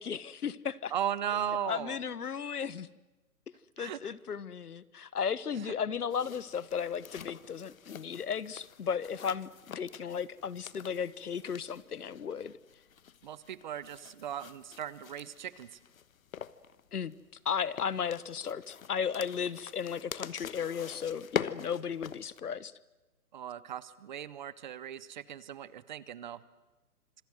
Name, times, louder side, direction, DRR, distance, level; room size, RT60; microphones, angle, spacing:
voice 1, 0.0-0.9 1.7-2.9 3.8-9.5 9.7-12.5 16.9-17.1 17.4-22.7, left 7 dB, 85° left, 19 dB, 1.2 m, -35 dB
voice 2, 0.9-2.0 3.8-4.1 5.6-5.7 13.2-15.8 23.3-26.4, right 10 dB, 30° right, 18 dB, 0.8 m, -37 dB
sound 1, 6.1-22.4, left 8 dB, 65° left, 1.3 m, -44 dB
26.5 x 22.5 x 7.8 m, 1.1 s
hypercardioid pair, 150°, 45 cm